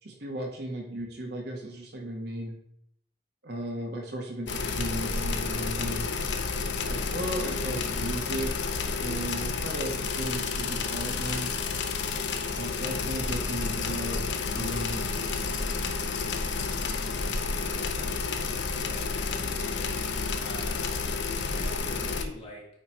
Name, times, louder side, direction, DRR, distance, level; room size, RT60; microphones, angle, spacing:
voice 1, 0.0-2.5 3.4-6.1 6.8-8.5 9.0-11.5 12.5-14.3 14.5-15.1, right 1 dB, 60° right, 1 dB, 1.1 m, -35 dB
sound 1, 4.5-22.2, left 4 dB, 70° left, 0.7 m, -30 dB
voice 2, 18.9-19.9 20.4-20.9 21.5-22.6, left 1 dB, 30° left, -3 dB, 1.5 m, -44 dB
8.7 x 3.3 x 4.3 m, 0.72 s
head